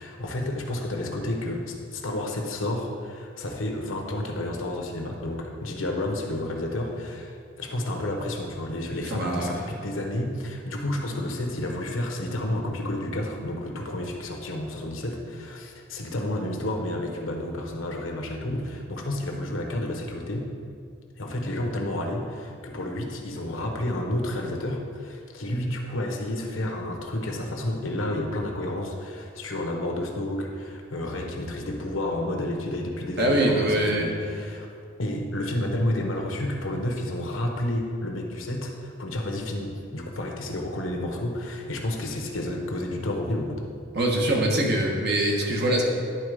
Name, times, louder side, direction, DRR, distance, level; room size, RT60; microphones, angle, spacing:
voice 1, 0.0-20.5 21.2-34.7 35.0-43.6, left 1 dB, 80° left, 1 dB, 1.0 m, -30 dB
voice 2, 9.1-9.5 33.2-34.1 43.9-45.8, right 1 dB, 55° right, -1 dB, 1.2 m, -23 dB
10.5 x 3.9 x 4.9 m, 2.2 s
head